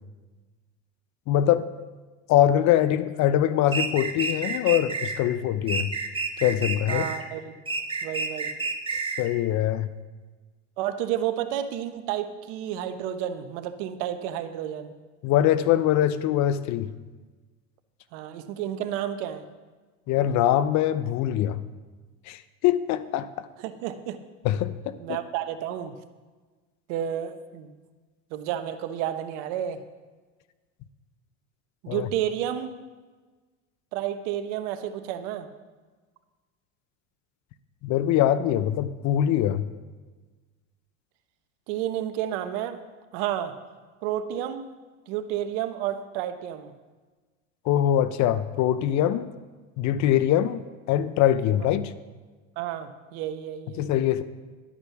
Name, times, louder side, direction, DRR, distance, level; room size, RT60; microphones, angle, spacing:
voice 1, 1.3-1.7 2.3-5.9 6.4-7.0 9.2-9.9 15.2-16.9 20.1-21.6 22.3-23.5 24.4-24.9 31.9-32.1 37.8-39.6 47.7-49.2 49.8-51.8 53.8-54.2, left 11 dB, 50° left, 14 dB, 0.8 m, -23 dB
sound 1, 3.7-5.2 5.7-7.2 7.7-9.3, right 4 dB, 15° right, 1.2 m, -29 dB
voice 2, 6.9-7.5 8.0-8.5 10.8-14.9 18.1-19.4 23.6-24.2 25.0-26.0 26.9-27.8 28.3-29.8 31.8-32.7 33.9-35.5 41.7-42.8 43.1-43.5 44.0-44.7 45.1-46.7 52.6-53.9, right 11 dB, 70° right, 10 dB, 1.1 m, -31 dB
12.0 x 8.6 x 5.9 m, 1.3 s
supercardioid pair, 95°, 36 cm